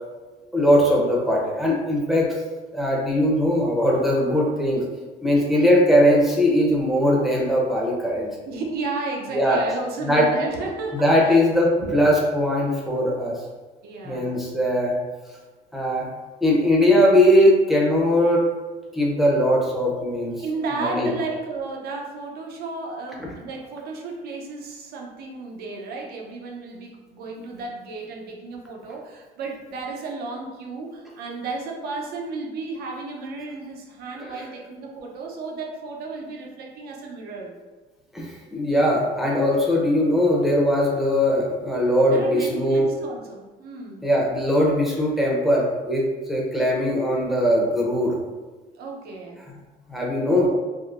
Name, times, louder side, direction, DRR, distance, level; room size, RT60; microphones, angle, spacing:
voice 1, 0.5-2.3 2.7-4.8 5.2-8.3 9.3-9.6 10.1-10.3 10.9-13.4 14.0-14.9 15.7-16.1 16.4-18.5 18.9-20.4 20.7-21.1 34.2-34.3 38.1-42.9 44.0-48.2 49.9-50.5, equal, ahead, -4 dB, 0.6 m, -20 dB
voice 2, 8.5-11.4 11.8-11.9 13.8-14.4 20.4-37.5 39.5-40.0 42.1-44.1 48.8-49.4, right 3 dB, 70° right, 0 dB, 0.6 m, -33 dB
3.5 x 2.0 x 2.4 m, 1.3 s
cardioid pair, 110°, 17 cm